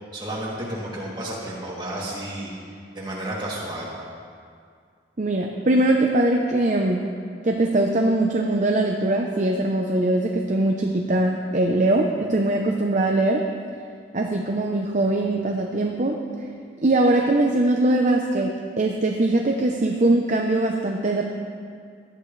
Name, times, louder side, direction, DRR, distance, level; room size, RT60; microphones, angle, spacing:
voice 1, 0.1-2.5 2.9-3.9, right 1 dB, 25° right, -6 dB, 2.8 m, -31 dB
voice 2, 5.2-7.1 7.4-13.5 14.1-16.2 16.8-21.2, right 2 dB, 45° right, 2 dB, 0.7 m, -21 dB
17.5 x 12.0 x 3.3 m, 2.2 s
head